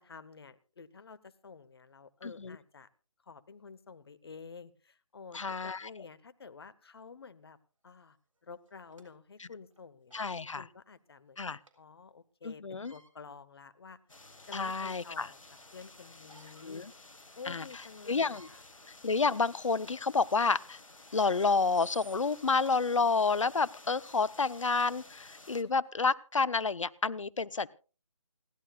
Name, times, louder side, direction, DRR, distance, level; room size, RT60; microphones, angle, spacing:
voice 1, 0.0-2.9 3.2-7.6 7.8-8.2 8.4-14.0 14.5-15.4 15.7-16.9 17.3-18.6, left 5 dB, 50° left, 15 dB, 1.1 m, -50 dB
voice 2, 2.2-2.6 5.3-5.9 9.4-9.5 10.1-10.6 11.4-11.6 12.4-12.9 14.5-15.3 16.6-16.9 17.5-17.6 18.1-18.5 19.0-20.8 21.1-27.7, left 4 dB, 75° left, 20 dB, 0.7 m, -29 dB
sound 1, 7.9-8.0 8.7-9.1 9.7-9.8 10.1-10.3 11.7-11.8 12.7-13.1 13.9-14.0 14.5-15.2 16.1-16.7 17.2-17.3 17.6-17.9 18.2-18.5 19.2-19.4 19.8-19.9 21.0-22.7 23.4-23.6 24.4-24.5 24.8-24.9 25.5-25.6, right 2 dB, 80° right, 3.5 m, -58 dB
sound 2, 14.1-25.6, left 2 dB, 90° left, 1.4 m, -54 dB
28.5 x 11.5 x 2.4 m, 0.35 s
figure-of-eight pair, 155°, 16 cm